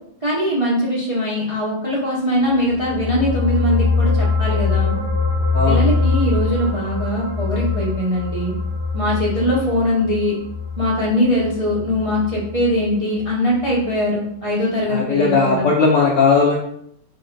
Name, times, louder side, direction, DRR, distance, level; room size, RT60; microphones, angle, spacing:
voice 1, 0.2-5.0 5.7-8.5 8.9-10.4 10.8-15.7, left 1 dB, 50° right, -6 dB, 0.4 m, -21 dB
sound 1, 2.5-13.3 13.6-13.8, left 4 dB, 85° right, 1.7 m, -23 dB
voice 2, 14.9-16.6, left 4 dB, 75° left, -2 dB, 0.7 m, -17 dB
4.0 x 2.2 x 3.8 m, 0.69 s
omnidirectional pair, 1.9 m